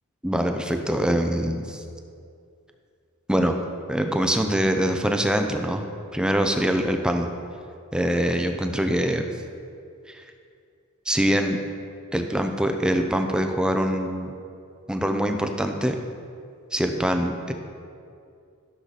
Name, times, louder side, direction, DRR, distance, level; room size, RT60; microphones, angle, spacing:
voice 1, 0.2-1.8 3.3-3.6 3.9-5.9 6.1-7.3 7.9-9.3 10.1-10.2 11.1-11.6 12.1-14.3 14.9-16.0 16.7-17.5, equal, 5° right, 5 dB, 0.6 m, -24 dB
13.0 x 6.9 x 4.1 m, 2.4 s
head